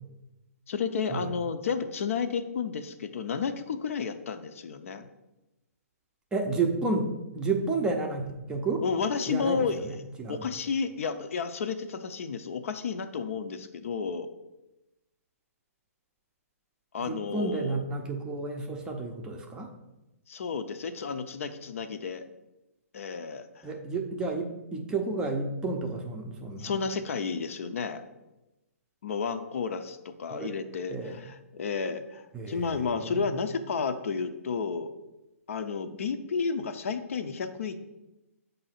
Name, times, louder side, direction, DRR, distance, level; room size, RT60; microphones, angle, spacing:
voice 1, 0.7-5.1 8.8-9.8 10.3-14.3 16.9-17.9 20.3-22.2 22.9-23.4 26.6-28.0 29.0-34.9 35.5-37.8, left 5 dB, 60° left, 9 dB, 0.6 m, -32 dB
voice 2, 6.3-8.8 9.3-10.4 17.0-19.7 23.6-26.8 30.3-30.5 30.9-31.2 32.3-33.4, right 3 dB, 10° right, 2 dB, 0.5 m, -31 dB
7.5 x 2.7 x 5.7 m, 0.98 s
hypercardioid pair, 155°, 8 cm